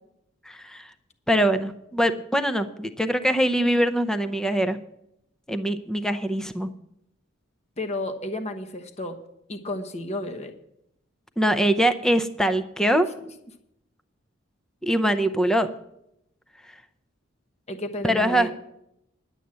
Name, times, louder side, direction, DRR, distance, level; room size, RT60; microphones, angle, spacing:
voice 1, 0.5-0.9 1.3-4.8 5.5-6.7 11.4-13.1 14.8-15.7 18.0-18.5, right 1 dB, 5° left, 9 dB, 0.6 m, -23 dB
voice 2, 7.8-9.2 9.5-10.5 13.0-13.1 17.7-18.5, left 1 dB, 30° left, 6 dB, 1.1 m, -32 dB
11.0 x 8.2 x 7.5 m, 0.80 s
head